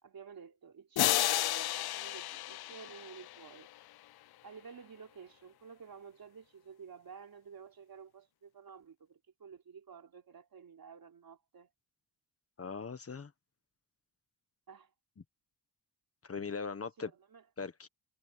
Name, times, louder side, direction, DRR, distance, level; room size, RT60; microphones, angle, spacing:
voice 1, 0.0-3.7 4.4-11.7 14.7-14.9 17.1-17.5, right 6 dB, 55° right, 3.9 m, -52 dB
sound 1, 1.0-3.8, left 15 dB, 65° left, 0.5 m, -32 dB
voice 2, 12.6-13.3 16.2-17.1 17.6-17.9, left 5 dB, 35° left, 1.4 m, -40 dB
cardioid pair, 105°, 42 cm